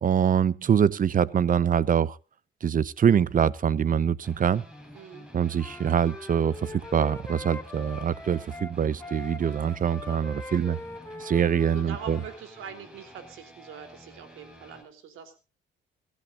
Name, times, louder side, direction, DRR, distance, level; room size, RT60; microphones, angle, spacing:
voice 1, 0.0-2.2 2.6-4.6 5.3-10.8 11.2-12.2, right 8 dB, 45° right, 0.9 m, -24 dB
sound 1, 4.2-14.8, equal, 5° right, 5.4 m, -50 dB
voice 2, 4.9-5.3 10.5-10.8 11.7-15.4, right 7 dB, 90° right, 3.5 m, -43 dB
Wind instrument woodwind instrument, 5.6-12.4, left 2 dB, 10° left, 2.6 m, -42 dB
24.0 x 14.0 x 2.6 m
cardioid pair, 90°, 20 cm